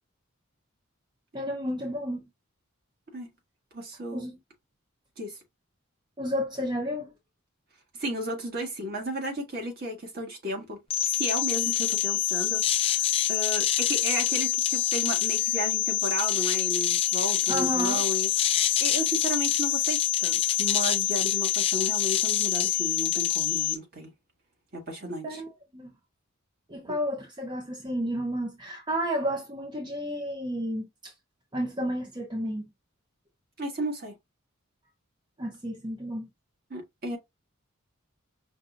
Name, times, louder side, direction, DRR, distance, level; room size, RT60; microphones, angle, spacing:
voice 1, 1.3-2.3 4.1-4.4 6.2-7.1 17.5-18.0 25.2-25.9 26.7-31.1 31.5-32.7 35.4-36.3, equal, 20° right, 0.6 m, -31 dB
voice 2, 3.7-4.3 5.2-5.4 8.0-10.8 11.1-24.1 24.7-25.4 26.8-27.0 33.6-34.1 36.7-37.2, right 1 dB, 50° right, 1.7 m, -34 dB
sound 1, 10.9-23.8, left 13 dB, 25° left, 0.4 m, -26 dB
5.2 x 2.6 x 2.4 m
head